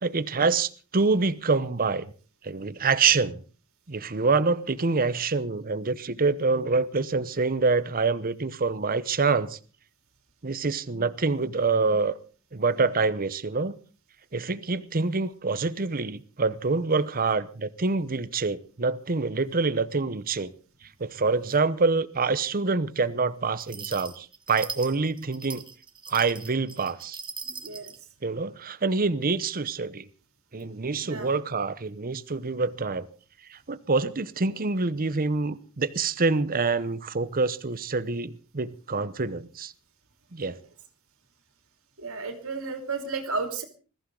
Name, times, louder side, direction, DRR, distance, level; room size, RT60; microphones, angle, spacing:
voice 1, 0.0-2.1 2.4-3.4 3.9-9.6 10.4-12.2 12.5-13.8 14.3-20.5 21.0-25.6 26.1-27.2 28.2-30.1 30.5-33.1 33.5-39.7 40.3-40.6, right 4 dB, 40° right, 0.9 m, -26 dB
sound 1, 23.6-28.0, right 5 dB, 20° right, 1.5 m, -40 dB
voice 2, 27.4-27.9 31.0-31.3 40.4-40.5 42.0-43.6, right 4 dB, 70° right, 2.9 m, -34 dB
21.0 x 14.5 x 3.9 m
head